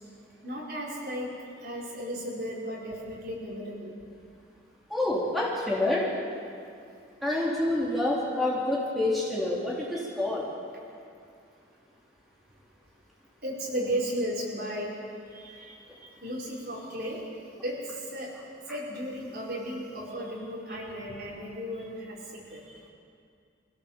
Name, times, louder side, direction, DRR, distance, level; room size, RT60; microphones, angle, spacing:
voice 1, 0.4-3.9 13.4-14.9 15.3-17.2 17.6-18.3 18.7-22.6, equal, 55° right, -4 dB, 4.7 m, -35 dB
voice 2, 4.9-6.1 7.2-10.4, left 1 dB, ahead, -6 dB, 3.4 m, -27 dB
23.5 x 16.5 x 7.3 m, 2.4 s
head